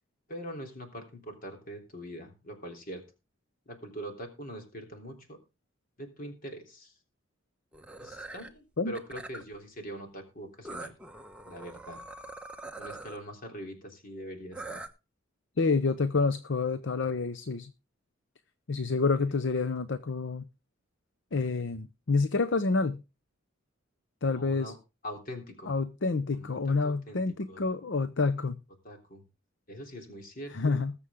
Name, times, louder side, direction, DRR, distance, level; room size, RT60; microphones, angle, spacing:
voice 1, 0.3-3.0 3.6-5.4 6.0-6.9 8.0-10.9 11.4-12.0 12.8-14.8 18.7-19.2 24.4-24.8 25.0-25.8 26.3-27.6 28.8-29.2 29.7-30.8, equal, 45° left, 3.4 m, -43 dB
sound 1, 7.7-8.5 8.9-9.5 10.6-13.2 14.5-14.9, right 2 dB, 5° right, 1.0 m, -43 dB
voice 2, 15.6-17.7 18.7-20.5 21.3-23.0 24.2-24.7 25.7-28.6 30.5-30.9, left 4 dB, 60° left, 0.7 m, -28 dB
20.5 x 7.0 x 3.6 m
head